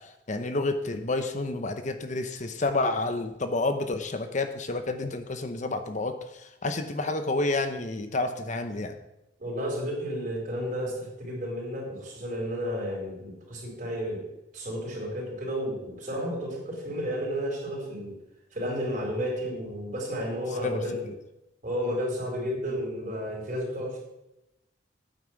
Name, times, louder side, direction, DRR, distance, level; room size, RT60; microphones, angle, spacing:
voice 1, 0.3-6.1 6.4-9.0 20.6-21.1, left 2 dB, 45° left, 8 dB, 0.9 m, -29 dB
voice 2, 9.4-14.2 14.5-18.1 18.5-21.0 21.6-24.0, equal, 45° right, -1 dB, 4.4 m, -32 dB
9.2 x 9.1 x 6.2 m, 0.90 s
head